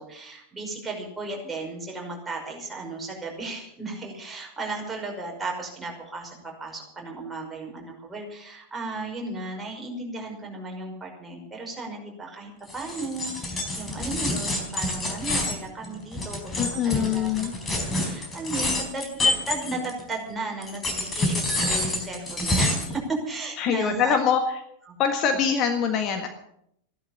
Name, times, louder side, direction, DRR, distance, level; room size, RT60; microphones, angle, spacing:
voice 1, 0.0-17.3 18.0-24.2, right 2 dB, 10° right, -1 dB, 5.6 m, -35 dB
sound 1, 12.7-20.1 20.6-23.0, left 2 dB, 15° left, 4.1 m, -27 dB
voice 2, 16.6-17.5 23.6-24.4 25.0-26.3, left 7 dB, 35° left, 6 dB, 1.7 m, -24 dB
15.5 x 12.0 x 7.4 m, 0.74 s
figure-of-eight pair, 90°, 0 cm